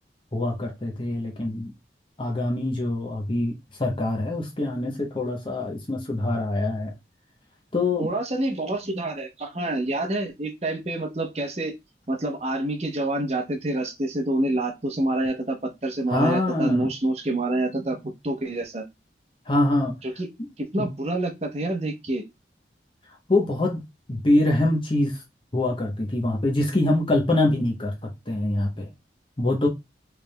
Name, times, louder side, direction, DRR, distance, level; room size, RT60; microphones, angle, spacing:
voice 1, 0.3-1.7 2.2-6.9 7.7-8.1 16.1-16.9 19.5-20.0 20.8-20.9 23.3-23.8 24.1-25.2 25.5-28.9 29.4-29.7, left 2 dB, 30° left, 0.9 m, -24 dB
voice 2, 8.0-11.7 12.1-18.8 20.0-20.3 20.6-22.2, right 2 dB, 35° right, 0.9 m, -27 dB
4.6 x 3.4 x 2.2 m
head